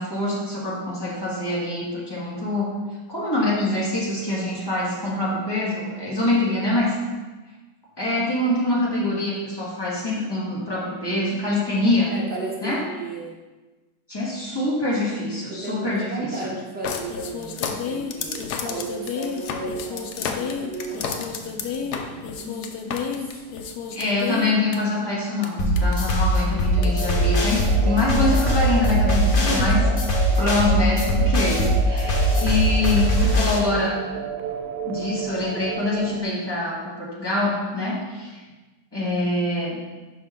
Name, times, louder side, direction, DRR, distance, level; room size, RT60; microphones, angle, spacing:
voice 1, 0.0-2.8 3.1-6.9 8.0-12.1 12.6-12.8 14.1-16.5 23.9-29.8 30.4-34.0 34.8-38.4 38.9-39.8, left 2 dB, 15° left, -6 dB, 1.5 m, -25 dB
voice 2, 12.1-13.3 15.5-23.4 29.2-29.9, right 2 dB, 5° right, -5 dB, 1.2 m, -34 dB
sound 1, 16.8-24.8 25.4-25.5 25.8-26.1 26.8-26.9, left 6 dB, 80° left, 1.1 m, -30 dB
sound 2, 25.6-33.6, equal, 45° left, 0.8 m, -21 dB
sound 3, 26.8-36.2, right 8 dB, 85° right, 1.2 m, -32 dB
5.8 x 5.4 x 3.6 m, 1.2 s
omnidirectional pair, 1.8 m